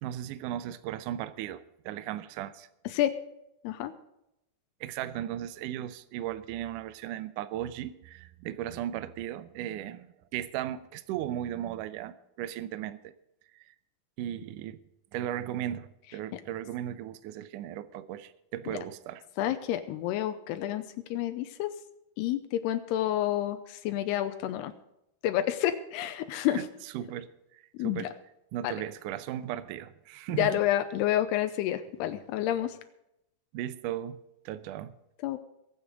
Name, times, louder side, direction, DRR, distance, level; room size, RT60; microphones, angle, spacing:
voice 1, 0.0-2.7 4.8-13.1 14.2-14.8 15.1-19.2 26.5-28.1 28.5-30.6 33.5-35.0, right 12 dB, 80° right, 13 dB, 1.9 m, -36 dB
voice 2, 19.4-20.9 21.1-21.7 22.2-24.7 25.2-26.6 27.7-28.1 28.6-28.8 30.3-32.7 35.2-35.4, left 12 dB, 85° left, 9 dB, 2.8 m, -29 dB
22.0 x 8.0 x 5.0 m, 0.84 s
omnidirectional pair, 4.6 m